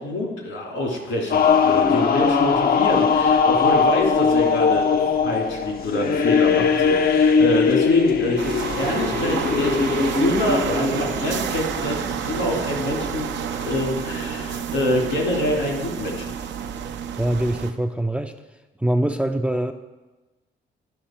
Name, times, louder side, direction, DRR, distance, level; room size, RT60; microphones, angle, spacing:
voice 1, 0.0-5.0 5.2-13.3 13.6-16.2, left 1 dB, 75° left, 0 dB, 2.5 m, -26 dB
sound 1, 1.3-14.6, left 5 dB, 50° left, 0.7 m, -20 dB
sound 2, 8.4-17.7, right 8 dB, 65° right, 0.6 m, -29 dB
voice 2, 17.1-18.3 18.8-19.7, right 1 dB, 5° right, 6 dB, 0.5 m, -23 dB
11.5 x 5.4 x 4.4 m, 1.1 s
cardioid pair, 90°, 20 cm